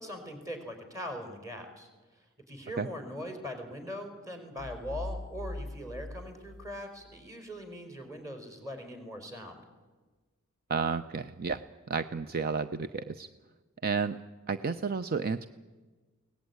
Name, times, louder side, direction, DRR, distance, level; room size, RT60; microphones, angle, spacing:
voice 1, 0.0-9.6, equal, 15° right, 6 dB, 4.6 m, -41 dB
sound 1, 4.6-7.3, left 1 dB, 20° left, 0.8 m, -41 dB
voice 2, 10.7-11.6 11.9-13.3 13.8-14.2 14.5-15.5, right 5 dB, 45° right, 11 dB, 0.6 m, -31 dB
23.5 x 18.0 x 9.5 m, 1.3 s
head